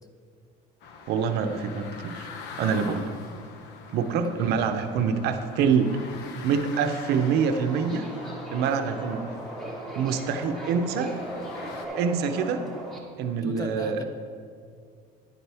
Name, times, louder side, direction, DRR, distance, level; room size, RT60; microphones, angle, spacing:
sound 1, 0.8-11.9, left 5 dB, 70° left, 0.8 m, -44 dB
voice 1, 1.1-2.3 2.6-3.1 3.9-6.0 6.4-8.1 8.5-9.4 10.0-11.2 12.0-12.7 13.2-14.0, right 6 dB, 60° right, 7 dB, 0.7 m, -25 dB
voice 2, 4.2-4.7 13.4-14.0, left 2 dB, 20° left, 5 dB, 0.7 m, -37 dB
Subway metro underground, 7.0-13.0, right 1 dB, ahead, 1.1 m, -38 dB
9.7 x 8.8 x 3.4 m, 2.2 s
cardioid pair, 145°, 19 cm